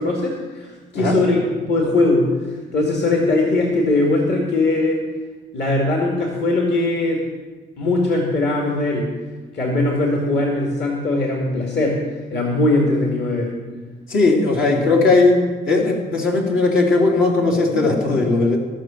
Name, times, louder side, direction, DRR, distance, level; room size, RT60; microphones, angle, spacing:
voice 1, 0.0-1.4 1.7-2.3 2.7-5.0 5.5-7.2 7.8-9.1 9.5-13.5, left 2 dB, 60° left, -1 dB, 2.2 m, -20 dB
voice 2, 14.1-15.3 15.7-18.6, left 3 dB, 80° left, -2 dB, 3.0 m, -17 dB
15.5 x 6.0 x 7.5 m, 1.4 s
cardioid pair, 90°, 20 cm